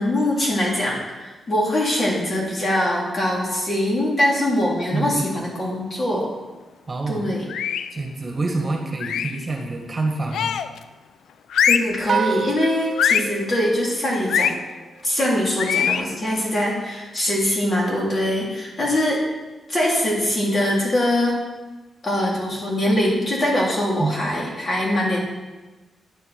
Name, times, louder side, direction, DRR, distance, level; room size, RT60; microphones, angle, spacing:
voice 1, 0.0-6.3 7.1-7.4 11.7-14.5 15.0-19.2 19.7-21.3 22.0-25.2, left 1 dB, 40° left, -3 dB, 3.6 m, -22 dB
voice 2, 4.9-5.2 6.9-7.3 7.9-10.5 24.0-24.2, right 3 dB, 35° right, 1 dB, 1.8 m, -26 dB
sound 1, 7.5-8.0 9.0-9.4 10.3-10.8 11.5-12.0 13.0-13.4 14.3-14.6 15.6-16.1, left 8 dB, 90° left, 0.4 m, -22 dB
sound 2, 12.1-14.6, right 6 dB, 60° right, 0.7 m, -28 dB
10.5 x 6.9 x 5.9 m, 1.2 s
cardioid pair, 80°, 0 cm